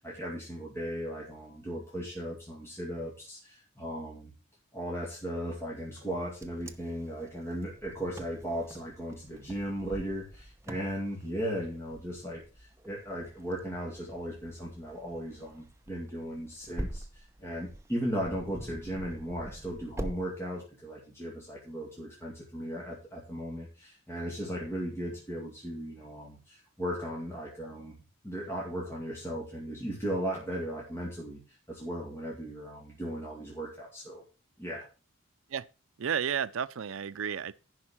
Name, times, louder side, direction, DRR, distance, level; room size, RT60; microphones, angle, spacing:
voice 1, 0.0-4.3 4.7-28.0 28.2-34.2 34.6-34.9, equal, 10° left, 2.2 m, -37 dB
Wind, 6.0-20.2, right 1 dB, 15° right, 0.7 m, -45 dB
voice 2, 36.0-37.5, right 7 dB, 75° right, 0.5 m, -32 dB
10.5 x 4.7 x 7.2 m
head